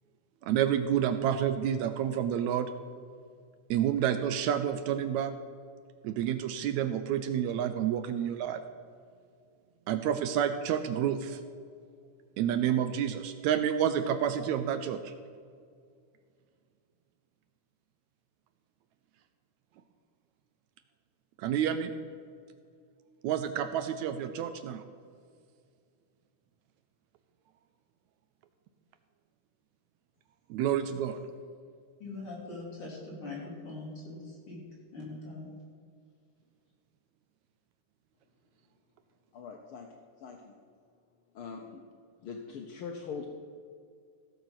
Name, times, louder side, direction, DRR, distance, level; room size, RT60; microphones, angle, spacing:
voice 1, 0.4-2.7 3.7-5.3 6.0-8.6 9.9-11.4 12.4-15.1 21.4-21.9 23.2-24.8 30.5-31.2, right 9 dB, 80° right, 1.8 m, -29 dB
voice 2, 32.0-34.6 34.9-35.5, left 2 dB, 45° left, 4.3 m, -42 dB
voice 3, 39.3-39.9 40.2-40.5 41.3-41.8 42.2-43.3, left 5 dB, 75° left, 1.2 m, -42 dB
16.0 x 7.1 x 6.0 m
omnidirectional pair, 3.5 m